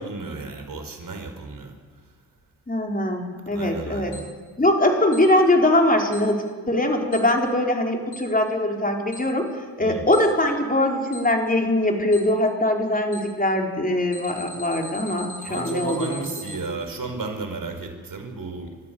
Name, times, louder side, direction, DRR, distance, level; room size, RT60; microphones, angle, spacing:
voice 1, 0.0-1.7 3.5-4.2 9.8-10.0 15.5-18.7, right 3 dB, 45° right, 5 dB, 4.9 m, -33 dB
voice 2, 2.7-4.2 4.6-9.4 9.8-16.2, left 1 dB, 20° left, 2 dB, 4.4 m, -22 dB
Alarm, 4.1-4.2 5.1-5.2 6.1-6.2 7.1-7.2 8.1-8.2 9.1-9.2 10.1-10.2 11.1-11.2 12.1-12.2 13.1-13.2 14.1-16.6, equal, 45° left, 6.4 m, -39 dB
29.5 x 12.5 x 7.0 m, 1.5 s
supercardioid pair, 50°, 45 cm